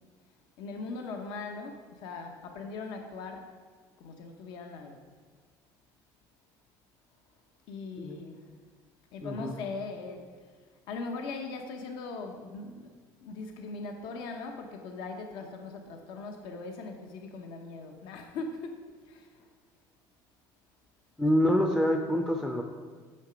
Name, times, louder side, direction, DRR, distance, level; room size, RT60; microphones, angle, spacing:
voice 1, 0.6-3.5 4.0-5.0 7.7-8.4 9.1-10.2 10.9-12.9 13.2-18.7 19.1-19.3, left 3 dB, 70° left, 4 dB, 0.9 m, -40 dB
voice 2, 9.2-9.5 21.2-22.6, equal, 5° left, 3 dB, 0.5 m, -26 dB
8.7 x 6.7 x 5.1 m, 1.5 s
cardioid pair, 160°, 8 cm